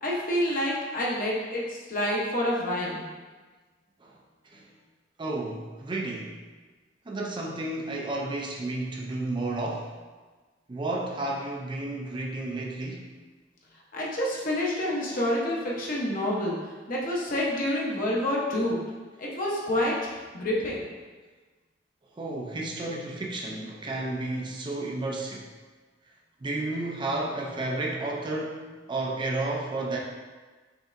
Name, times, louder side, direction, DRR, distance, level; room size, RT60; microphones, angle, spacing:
voice 1, 0.0-3.1 13.9-16.6 16.9-18.8 19.2-19.9 20.3-20.9, left 1 dB, 50° left, -4 dB, 0.9 m, -28 dB
voice 2, 5.2-6.4 7.1-9.9 10.7-13.1 22.2-25.5 26.4-30.0, right 2 dB, 25° right, -1 dB, 0.4 m, -32 dB
5.2 x 3.3 x 2.6 m, 1.3 s
head